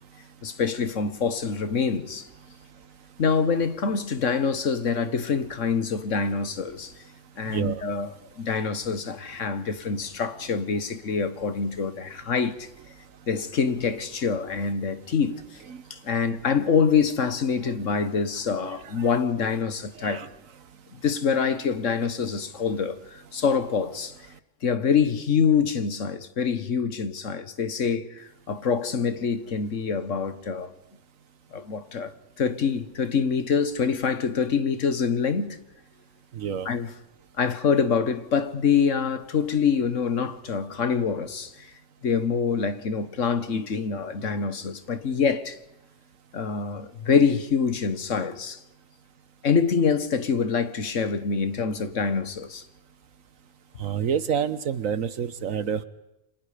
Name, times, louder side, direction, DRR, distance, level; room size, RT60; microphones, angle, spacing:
voice 1, 0.4-2.3 3.2-6.9 7.4-12.7 13.3-15.4 16.0-20.3 21.0-24.1 24.6-30.7 31.5-35.6 36.6-36.9 37.4-41.7 42.0-45.6 46.3-48.6 49.4-52.6, left 6 dB, 70° left, 1.7 m, -25 dB
voice 2, 7.5-7.8 15.7-15.8 17.6-17.7 18.6-18.7 20.0-20.3 36.3-36.7 53.8-55.8, right 8 dB, 90° right, 1.5 m, -28 dB
29.5 x 26.5 x 5.1 m
omnidirectional pair, 1.3 m